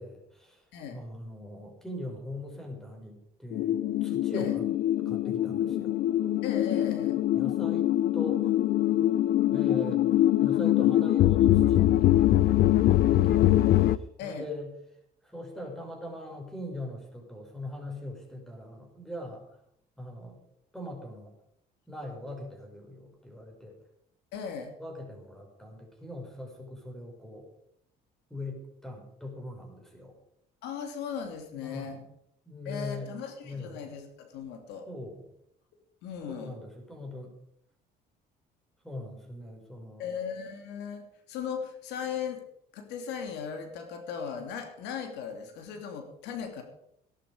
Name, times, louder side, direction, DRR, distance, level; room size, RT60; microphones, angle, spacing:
voice 1, 0.0-0.6 0.9-4.6 5.1-5.9 7.3-8.5 9.5-13.6 14.2-14.7 15.3-19.4 20.0-20.4 20.7-21.3 21.9-23.7 24.8-27.4 28.3-30.1 31.5-31.9 32.5-33.1 33.4-33.8 34.9-35.2 36.3-37.3 38.8-40.1, left 1 dB, ahead, 1 dB, 5.8 m, -41 dB
sound 1, 3.5-14.0, left 13 dB, 65° left, 0.6 m, -23 dB
voice 2, 6.4-7.2 14.2-14.5 24.3-24.7 30.6-32.0 32.6-34.9 36.0-36.6 40.0-42.4 42.7-46.6, left 7 dB, 90° left, 5 dB, 2.9 m, -37 dB
17.5 x 11.5 x 5.1 m, 0.74 s
cardioid pair, 110°, 17 cm